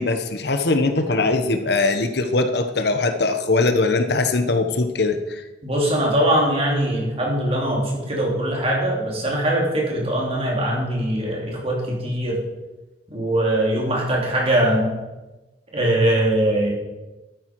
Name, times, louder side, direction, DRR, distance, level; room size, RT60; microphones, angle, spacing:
voice 1, 0.0-5.4, left 3 dB, 65° left, 8 dB, 1.1 m, -21 dB
voice 2, 5.6-12.4 13.1-15.0 15.7-16.7, right 1 dB, 35° right, -2 dB, 3.2 m, -21 dB
12.5 x 9.2 x 4.7 m, 1.1 s
head